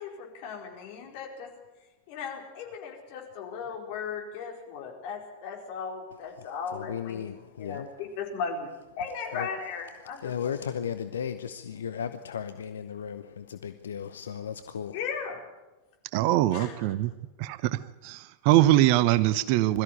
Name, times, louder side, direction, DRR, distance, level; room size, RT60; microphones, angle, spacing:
voice 1, 0.0-1.5 2.1-7.2 7.6-8.7 9.0-10.5 14.9-15.4 16.5-16.7, left 6 dB, 45° left, 1 dB, 4.5 m, -36 dB
voice 2, 6.4-7.9 9.3-9.5 10.2-15.0, left 8 dB, 65° left, 10 dB, 0.8 m, -35 dB
voice 3, 16.1-17.1 17.4-19.8, right 15 dB, 45° right, 17 dB, 0.7 m, -23 dB
21.5 x 13.5 x 9.4 m, 1.1 s
figure-of-eight pair, 90°, 0 cm